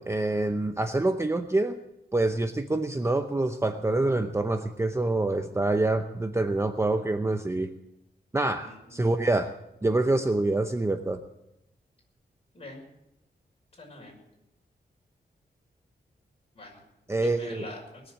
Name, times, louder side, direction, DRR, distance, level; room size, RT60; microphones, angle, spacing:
voice 1, 0.0-1.8 2.1-7.7 8.3-9.5 9.8-11.2 17.1-17.6, right 2 dB, 15° right, 7 dB, 0.7 m, -26 dB
voice 2, 8.6-9.3 12.5-12.8 13.8-14.2 16.5-18.0, left 1 dB, 35° left, 0 dB, 5.8 m, -45 dB
20.5 x 7.3 x 9.2 m, 0.88 s
wide cardioid pair, 130°, 17 cm